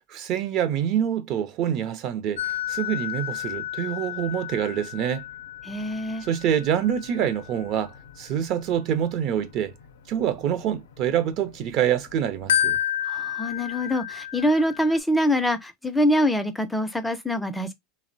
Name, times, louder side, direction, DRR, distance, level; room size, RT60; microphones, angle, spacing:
voice 1, 0.0-5.2 6.2-9.7 10.1-12.8, right 9 dB, 55° right, 0.5 m, -26 dB
sound 1, 2.4-11.8 12.2-15.0, left 11 dB, 85° left, 0.4 m, -31 dB
voice 2, 5.6-6.2 13.0-17.7, equal, 5° left, 0.4 m, -24 dB
2.8 x 2.0 x 2.5 m
hypercardioid pair, 100°, 0 cm